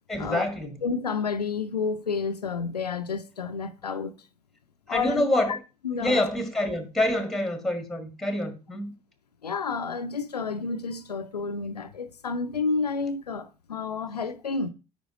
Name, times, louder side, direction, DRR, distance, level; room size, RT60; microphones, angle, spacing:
voice 1, 0.1-0.8 4.9-5.6 6.0-8.9, left 1 dB, ahead, 1.6 m, -26 dB
voice 2, 0.8-4.1 4.9-5.6 5.8-6.3 9.4-14.7, left 4 dB, 85° left, 0.5 m, -30 dB
9.4 x 5.1 x 3.6 m
figure-of-eight pair, 60°, 20 cm